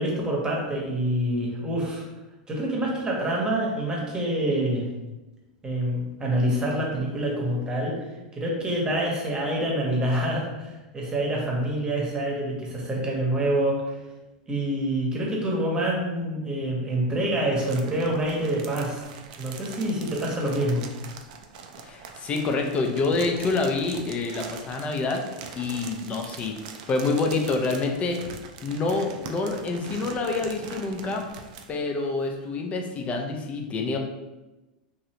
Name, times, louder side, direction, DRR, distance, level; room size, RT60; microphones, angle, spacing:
voice 1, 0.0-2.0 2.5-4.9 5.6-8.1 8.3-14.0 14.5-19.1 19.4-20.9, right 1 dB, 20° right, -2 dB, 1.0 m, -26 dB
sound 1, 17.6-31.8 32.5-32.6, right 6 dB, 65° right, 0.4 m, -42 dB
voice 2, 21.8-25.2 25.6-26.5 26.9-28.2 28.6-31.3 31.7-34.0, left 3 dB, 30° left, 3 dB, 0.5 m, -27 dB
3.1 x 2.6 x 2.9 m, 1.1 s
hypercardioid pair, 100°, 4 cm